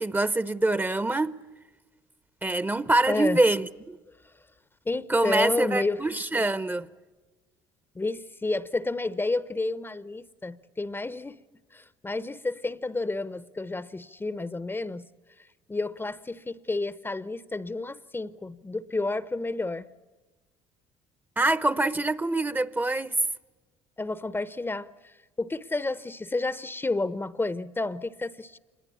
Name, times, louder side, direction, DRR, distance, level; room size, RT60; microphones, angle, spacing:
voice 1, 0.0-1.3 2.4-4.0 5.1-6.9 21.4-23.2, right 2 dB, 15° right, 0.8 m, -25 dB
voice 2, 3.1-3.4 4.8-6.0 7.9-11.4 11.7-15.0 15.4-19.9 24.0-28.6, left 2 dB, 15° left, 0.8 m, -31 dB
26.0 x 21.5 x 8.4 m
supercardioid pair, 75°, 13 cm